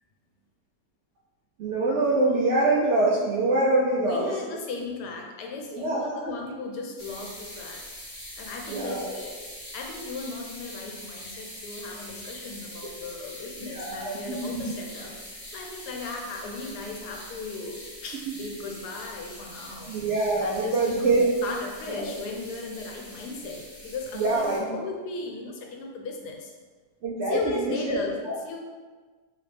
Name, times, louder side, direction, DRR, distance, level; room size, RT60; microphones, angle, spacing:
voice 1, 1.6-4.3 5.7-6.3 8.7-9.1 13.7-14.7 19.9-21.3 21.9-22.1 24.2-24.7 27.0-28.0, right 2 dB, 70° right, -5 dB, 0.7 m, -25 dB
voice 2, 4.0-7.8 8.4-9.4 9.7-20.0 20.4-24.4 24.7-26.5 27.3-28.6, left 3 dB, 85° left, 1 dB, 1.2 m, -36 dB
sound 1, 7.0-24.6, left 1 dB, 40° left, 1.2 m, -43 dB
3.3 x 2.9 x 3.3 m, 1.4 s
omnidirectional pair, 1.7 m